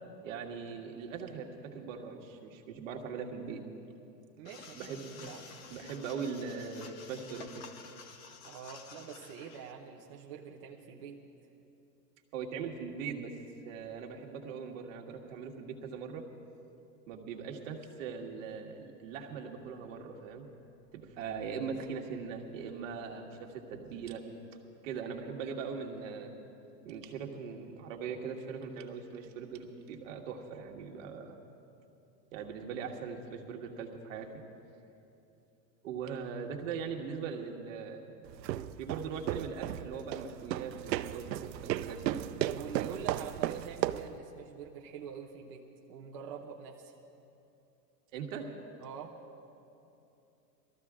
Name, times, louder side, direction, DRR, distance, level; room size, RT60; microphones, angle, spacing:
voice 1, 0.2-3.9 4.8-5.3 5.7-7.7 12.3-13.3 13.6-16.3 17.1-20.5 20.9-24.2 24.8-26.3 26.8-31.4 32.3-34.4 35.8-38.1 38.8-42.2 48.1-48.5, right 6 dB, 50° right, 2 dB, 1.6 m, -40 dB
sound 1, 4.4-9.7, left 5 dB, 35° left, 0.9 m, -51 dB
voice 2, 4.4-4.9 5.2-5.5 8.4-11.2 42.5-46.9 48.8-49.2, right 7 dB, 20° right, -2 dB, 0.4 m, -45 dB
sound 2, 38.3-44.2, right 12 dB, 80° right, 0.6 m, -35 dB
20.5 x 14.0 x 3.6 m, 2.9 s
hypercardioid pair, 150°, 50 cm